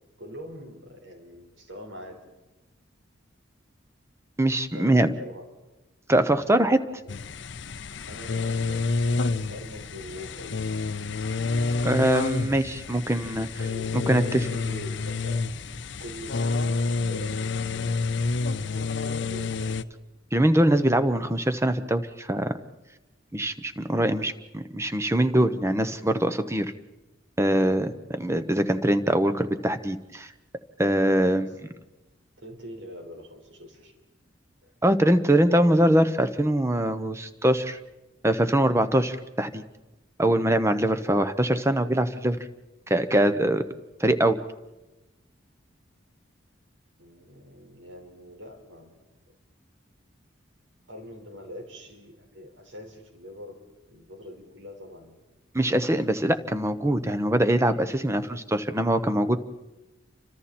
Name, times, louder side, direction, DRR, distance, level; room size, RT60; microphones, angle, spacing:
voice 1, 0.2-2.2 4.7-5.5 6.1-7.2 8.1-10.7 13.6-15.4 16.0-19.8 31.2-31.6 32.4-33.9 34.6-34.7 47.0-48.9 50.9-53.5 53.9-55.2, left 1 dB, 85° right, 2 dB, 4.9 m, -43 dB
voice 2, 4.4-5.1 6.1-6.8 11.8-13.5 13.9-14.4 20.3-22.5 23.3-26.7 27.4-30.3 30.8-31.5 34.8-37.8 38.2-39.6 40.2-42.4 42.9-43.6 44.0-44.4 55.5-59.4, right 1 dB, 15° right, 11 dB, 1.0 m, -23 dB
sound 1, 7.1-19.8, left 3 dB, 65° left, 0.7 m, -29 dB
29.5 x 25.5 x 4.4 m, 1.1 s
head